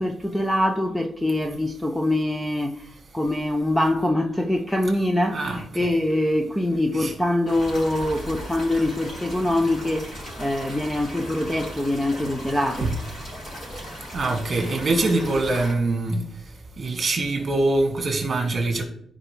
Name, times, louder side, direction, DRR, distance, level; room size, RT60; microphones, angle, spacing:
voice 1, 0.0-12.9, left 1 dB, 5° left, 0.5 m, -24 dB
voice 2, 5.3-5.9 6.9-7.1 12.8-12.9 14.1-16.2 16.8-18.8, right 2 dB, 30° right, 2.0 m, -24 dB
sound 1, 7.5-15.7, equal, 35° left, 4.0 m, -37 dB
14.5 x 4.9 x 3.4 m
wide cardioid pair, 170°, 0 cm